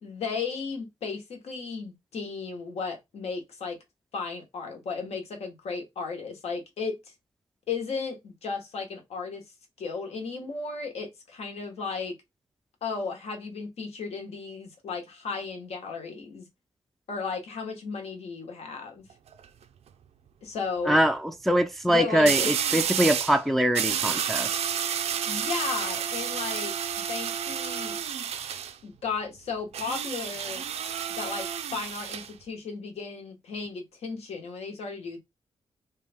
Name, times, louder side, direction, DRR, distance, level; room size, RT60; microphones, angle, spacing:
voice 1, 0.0-3.8 4.1-7.1 7.7-9.4 9.8-12.1 12.8-16.5 17.1-19.0 20.4-21.0 21.9-22.5 25.3-28.0 28.8-30.6 31.1-35.2, left 5 dB, 80° left, 1.1 m, -35 dB
sound 1, 19.1-19.4 22.3-23.4 23.7-28.7 29.7-32.3, right 8 dB, 85° right, 0.4 m, -30 dB
voice 2, 20.9-21.2 21.5-24.5, equal, ahead, 0.3 m, -23 dB
3.2 x 2.3 x 3.4 m
wide cardioid pair, 115°, 10 cm